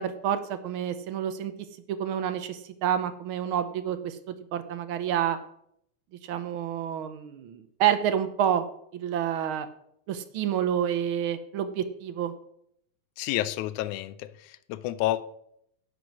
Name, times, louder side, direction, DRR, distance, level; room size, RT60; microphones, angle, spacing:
voice 1, 0.0-1.5 1.9-5.4 6.2-8.6 8.9-9.7 10.1-12.3, right 9 dB, 80° right, 1.2 m, -28 dB
voice 2, 13.2-15.2, left 15 dB, 85° left, 2.0 m, -30 dB
10.5 x 7.6 x 6.2 m
omnidirectional pair, 3.4 m